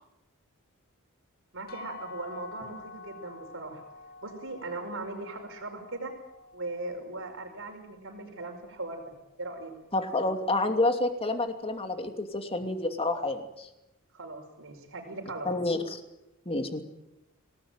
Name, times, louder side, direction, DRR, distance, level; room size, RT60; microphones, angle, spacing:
voice 1, 1.5-3.8 4.2-6.1 6.5-9.1 9.4-9.7 14.1-15.7, right 2 dB, 65° right, 3 dB, 5.2 m, -39 dB
sound 1, 1.7-7.5, left 4 dB, 45° left, 2.8 m, -48 dB
voice 2, 9.9-13.7 15.4-16.0 16.5-16.8, left 2 dB, 25° left, 6 dB, 2.9 m, -29 dB
26.5 x 19.0 x 9.2 m, 0.93 s
head